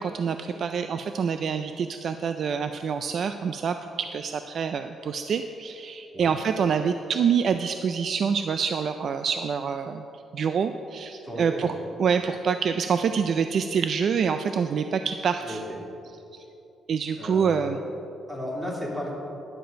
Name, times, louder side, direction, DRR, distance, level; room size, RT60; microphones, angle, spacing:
voice 1, 0.0-10.0 10.3-11.7 12.0-15.6 16.9-17.8, right 6 dB, 50° right, 8 dB, 0.3 m, -26 dB
voice 2, 11.2-11.7 15.4-15.6 17.2-17.7 18.3-19.2, left 1 dB, 15° right, -3 dB, 2.3 m, -34 dB
11.0 x 7.8 x 5.1 m, 2.9 s
cardioid pair, 150°, 0 cm